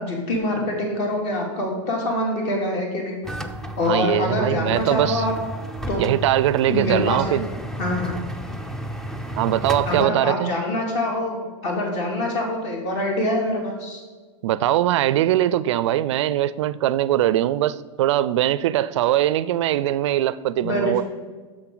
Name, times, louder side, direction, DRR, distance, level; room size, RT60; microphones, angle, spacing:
voice 1, 0.0-3.2 3.8-5.3 5.9-6.1 6.7-7.2 7.8-8.2 9.9-14.0 20.6-21.0, left 1 dB, 45° left, 0 dB, 2.6 m, -25 dB
sound 1, 3.2-10.0, right 1 dB, 5° left, 0.4 m, -32 dB
voice 2, 3.8-5.2 6.0-7.5 9.4-10.5 14.4-21.0, right 13 dB, 65° right, 16 dB, 0.4 m, -21 dB
8.7 x 6.4 x 3.9 m, 1.4 s
hypercardioid pair, 130°, 16 cm